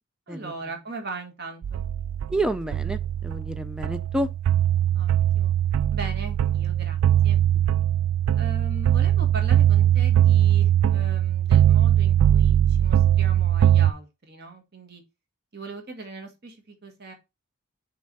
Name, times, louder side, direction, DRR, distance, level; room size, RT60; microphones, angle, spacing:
voice 1, 0.3-1.8 4.9-5.5 5.9-7.4 8.3-15.0 15.5-17.1, right 3 dB, 50° right, 1.6 m, -39 dB
sound 1, 1.6-13.9, right 11 dB, 85° right, 0.3 m, -21 dB
voice 2, 2.3-4.3, right 1 dB, 5° right, 0.3 m, -29 dB
6.8 x 3.2 x 5.3 m
head